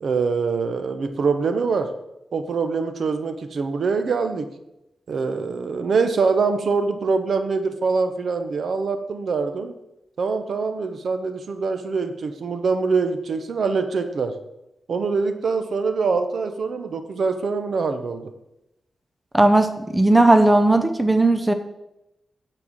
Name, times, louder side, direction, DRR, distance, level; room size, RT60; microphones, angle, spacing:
voice 1, 0.0-1.9 2.3-4.5 5.1-9.7 10.2-14.3 14.9-18.3, right 4 dB, 60° right, 8 dB, 0.9 m, -24 dB
voice 2, 19.3-21.5, right 2 dB, 10° right, 7 dB, 0.6 m, -16 dB
9.9 x 4.5 x 7.4 m, 0.90 s
wide cardioid pair, 135°, 0 cm